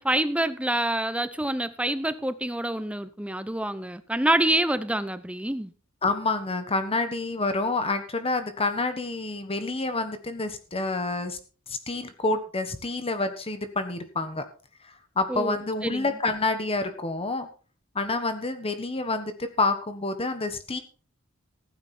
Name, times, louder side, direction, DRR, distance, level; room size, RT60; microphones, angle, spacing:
voice 1, 0.0-5.7 15.3-16.0, right 1 dB, 5° right, 0.8 m, -27 dB
voice 2, 6.0-11.4 11.7-14.5 14.8-17.5 17.9-20.8, left 3 dB, 25° left, 1.3 m, -28 dB
15.0 x 9.7 x 4.3 m
head